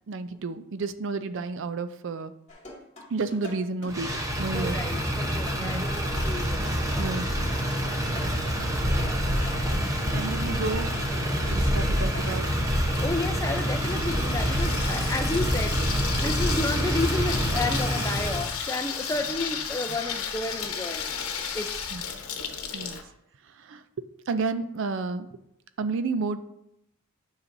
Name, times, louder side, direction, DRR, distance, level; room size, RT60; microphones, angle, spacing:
voice 1, 0.1-2.3 3.1-4.1 4.4-4.8 5.6-5.8 7.0-7.3 10.1-10.9 11.5-12.5 21.9-22.0 22.7-23.0 23.6-23.8 24.3-25.3 25.8-26.4, right 3 dB, 60° right, 11 dB, 0.4 m, -31 dB
sound 1, 2.5-8.7 9.0-10.7 11.0-15.0, left 2 dB, 30° left, 2.2 m, -45 dB
Motor vehicle (road), 3.9-18.5, equal, 15° right, 0.8 m, -27 dB
voice 2, 4.5-7.1 8.8-9.3 13.0-21.0 21.5-21.7, left 2 dB, 15° left, 6 dB, 0.5 m, -32 dB
Water tap faucet / Sink (filling or washing), 12.6-23.0, left 7 dB, 75° left, 0.9 m, -34 dB
9.8 x 5.7 x 2.6 m, 0.79 s
head